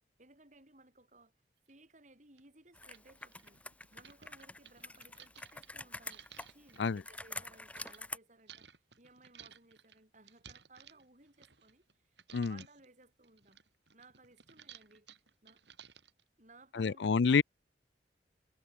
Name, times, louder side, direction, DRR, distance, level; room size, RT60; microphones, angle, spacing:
voice 1, 0.2-1.3 1.7-3.6 3.9-13.6 13.9-15.1 15.4-15.6 16.4-17.4, right 2 dB, 45° right, 7.4 m, -61 dB
sound 1, 1.7-1.8 2.4-2.5 2.8-8.0 8.5-11.9 12.2-12.9 13.2-16.2, right 8 dB, 80° right, 7.2 m, -57 dB
Computer keyboard, 2.7-8.2, left 2 dB, 10° left, 0.7 m, -47 dB
voice 2, 16.7-17.4, left 5 dB, 80° left, 0.5 m, -28 dB
head